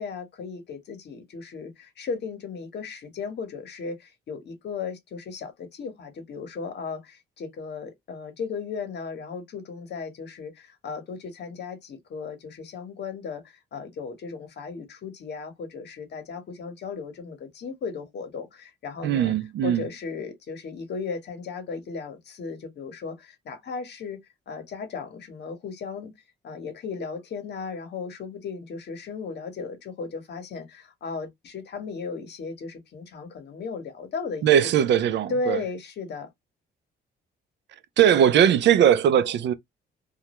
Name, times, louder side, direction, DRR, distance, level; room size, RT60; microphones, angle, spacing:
voice 1, 0.0-19.3 19.6-24.2 24.5-26.1 26.4-34.7 35.3-36.3, left 5 dB, 60° left, 0.9 m, -36 dB
voice 2, 19.0-19.8 34.4-35.6 38.0-39.5, right 9 dB, 65° right, 0.4 m, -19 dB
2.3 x 2.0 x 2.9 m
cardioid pair, 90°, 20 cm